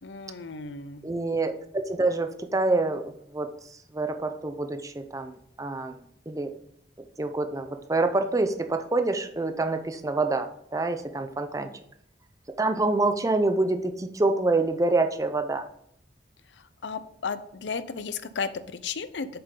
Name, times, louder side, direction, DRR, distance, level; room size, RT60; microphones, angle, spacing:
voice 1, 0.0-1.0 16.8-19.3, left 5 dB, 80° left, 12 dB, 0.6 m, -34 dB
voice 2, 1.0-3.5 3.9-6.0 6.3-6.5 7.2-11.7 12.6-15.6, right 2 dB, 20° right, 7 dB, 0.6 m, -26 dB
7.7 x 6.8 x 3.8 m, 0.70 s
head